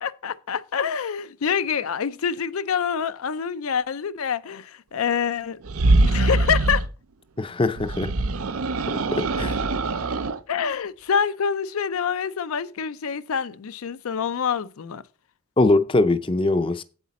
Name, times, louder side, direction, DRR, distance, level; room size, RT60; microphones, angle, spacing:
voice 1, 0.0-5.6 6.0-6.9 10.5-15.0, left 7 dB, 80° left, 0.5 m, -26 dB
sound 1, 5.6-6.9 7.8-10.4, right 2 dB, 90° right, 0.7 m, -23 dB
voice 2, 7.4-8.1 9.4-9.6 15.6-16.8, left 2 dB, 25° left, 0.5 m, -21 dB
8.3 x 8.1 x 4.2 m
head